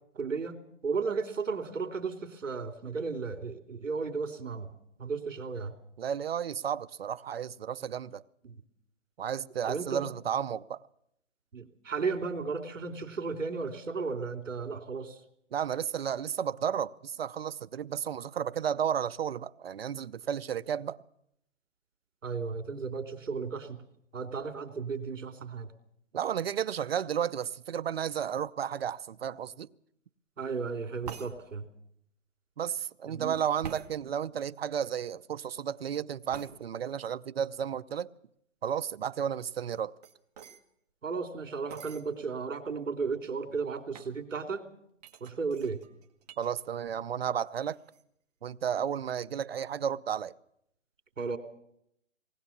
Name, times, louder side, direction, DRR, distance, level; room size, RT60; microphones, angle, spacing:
voice 1, 0.1-0.6 0.8-4.7 5.0-5.7 8.4-8.5 9.7-10.0 11.5-15.2 22.2-23.8 24.1-25.7 30.4-31.6 33.1-33.4 41.0-44.6 45.2-45.8 51.2-51.4, right 5 dB, 85° right, 3.0 m, -34 dB
voice 2, 6.0-8.2 9.2-10.8 15.5-21.0 26.1-29.7 32.6-38.1 38.6-39.9 46.4-47.8 48.4-50.3, right 8 dB, 50° right, 0.7 m, -33 dB
sound 1, 31.0-31.3 33.6-33.9 36.3-36.5 39.6-40.6 41.7-42.0 42.7-42.8 43.0-43.4 43.9-44.1 45.0-46.5 46.8-47.3 47.6-48.0, right 7 dB, 30° right, 1.7 m, -46 dB
19.5 x 19.0 x 7.2 m
hypercardioid pair, 170°, 37 cm